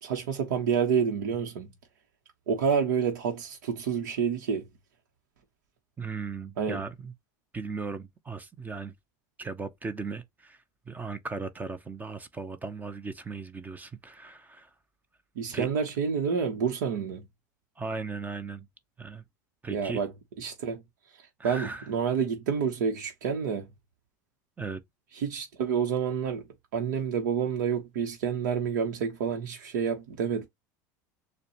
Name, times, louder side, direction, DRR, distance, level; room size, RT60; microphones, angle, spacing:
voice 1, 0.0-1.7 2.5-4.6 6.6-6.8 15.4-17.2 19.7-20.1 20.4-20.8 21.4-23.7 25.2-26.4 26.7-30.5, right 6 dB, 80° right, 0.9 m, -28 dB
voice 2, 6.0-7.1 7.5-8.9 9.4-14.7 15.5-15.7 17.8-18.7 19.0-19.2 19.6-20.0 21.4-21.9 24.6-24.8, right 4 dB, 15° right, 0.6 m, -37 dB
6.6 x 2.2 x 2.9 m
supercardioid pair, 100°, 10 cm